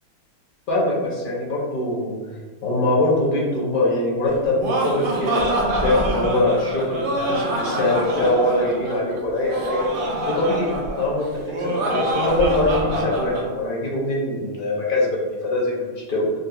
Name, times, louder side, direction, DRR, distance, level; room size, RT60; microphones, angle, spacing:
voice 1, 0.7-2.1 2.6-9.9 10.3-11.3 11.6-16.3, left 1 dB, 70° left, -4 dB, 0.5 m, -23 dB
Laughter, 4.3-13.5, right 1 dB, 85° right, 0.4 m, -25 dB
3.6 x 2.6 x 2.2 m, 1.5 s
omnidirectional pair, 1.6 m